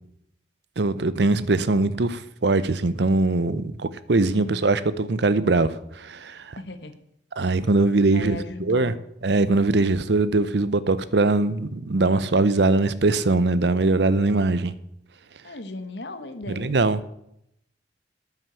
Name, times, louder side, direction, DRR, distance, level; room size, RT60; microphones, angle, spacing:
voice 1, 0.8-6.6 7.4-8.9 9.2-14.7 16.5-17.0, right 3 dB, 65° right, 15 dB, 0.7 m, -21 dB
voice 2, 4.3-4.7 6.6-6.9 8.1-8.9 15.4-16.8, left 2 dB, 65° left, 9 dB, 1.2 m, -37 dB
9.6 x 9.1 x 6.8 m, 0.77 s
head